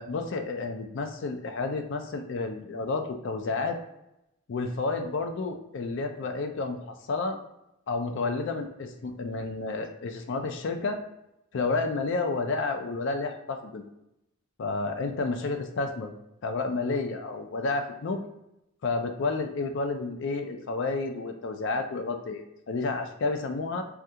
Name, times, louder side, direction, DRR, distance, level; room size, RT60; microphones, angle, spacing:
voice 1, 0.0-3.8 4.5-7.4 7.9-11.0 11.5-13.9 14.6-16.1 16.4-18.2 18.8-23.8, left 3 dB, 60° left, 6 dB, 0.4 m, -30 dB
3.4 x 2.3 x 2.8 m, 0.87 s
head